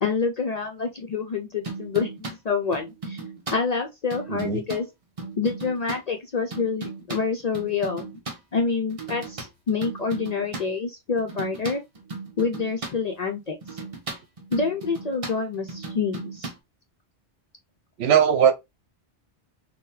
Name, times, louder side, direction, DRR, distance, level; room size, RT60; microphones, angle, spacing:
voice 1, 0.0-3.2 3.5-4.9 5.4-8.2 8.5-11.8 12.4-13.8 14.5-16.5, left 5 dB, 55° left, 0.5 m, -27 dB
sound 1, 1.6-2.4 2.7-3.6 4.1-4.8 5.2-6.0 6.5-8.4 8.9-10.7 11.2-12.9 13.6-16.6, right 3 dB, 35° right, 0.8 m, -36 dB
voice 2, 4.3-4.6 18.0-18.5, right 8 dB, 70° right, 0.8 m, -19 dB
3.7 x 2.2 x 2.6 m
omnidirectional pair, 1.1 m